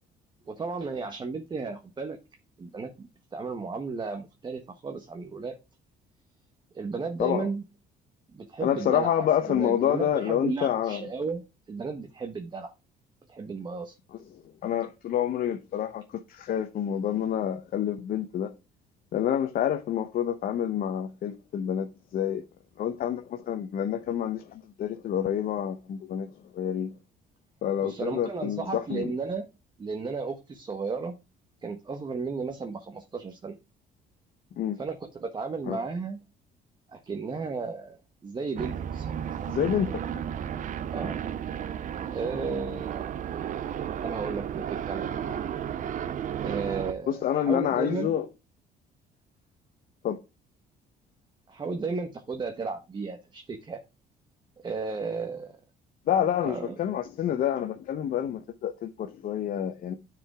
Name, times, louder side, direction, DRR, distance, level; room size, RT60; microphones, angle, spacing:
voice 1, 0.4-2.2 2.6-5.5 6.7-7.6 8.3-11.4 11.7-12.7 13.3-14.0 27.8-29.5 29.8-31.1 31.6-33.6 34.8-36.2 36.9-39.1 40.8-41.2 42.1-43.2 44.0-45.4 46.4-48.1 51.5-53.8 54.6-55.6 56.4-56.7, right 4 dB, 25° right, 1.3 m, -34 dB
voice 2, 8.6-11.1 14.3-18.5 19.1-21.9 22.1-22.4 22.8-26.3 26.5-26.9 27.6-29.1 34.6-34.8 35.7-35.8 39.5-40.0 47.1-48.3 50.0-50.2 56.1-59.9, left 10 dB, 55° left, 1.0 m, -28 dB
sound 1, 38.6-46.9, right 9 dB, 50° right, 0.7 m, -33 dB
9.8 x 5.1 x 3.6 m
cardioid pair, 110°, 17 cm